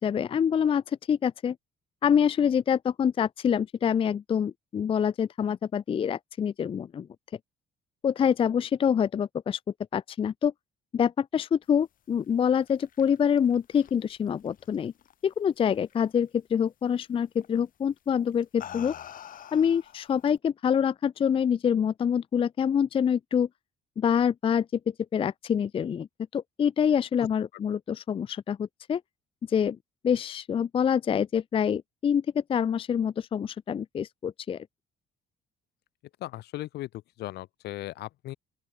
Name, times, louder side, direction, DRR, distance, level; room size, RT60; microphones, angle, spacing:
voice 1, 0.0-1.6 2.0-7.1 8.0-9.6 9.9-10.5 10.9-14.9 15.2-18.9 19.5-23.5 24.0-24.7 25.1-26.1 26.3-29.0 29.5-29.8 30.0-34.7, left 8 dB, 30° left, 0.5 m, -26 dB
sound 1, 12.5-15.4 15.8-16.2 17.4-17.6 18.3-20.4, left 10 dB, 55° left, 3.1 m, -46 dB
voice 2, 36.2-36.9 37.2-38.4, left 16 dB, 75° left, 1.7 m, -37 dB
open air
cardioid pair, 110°, 17 cm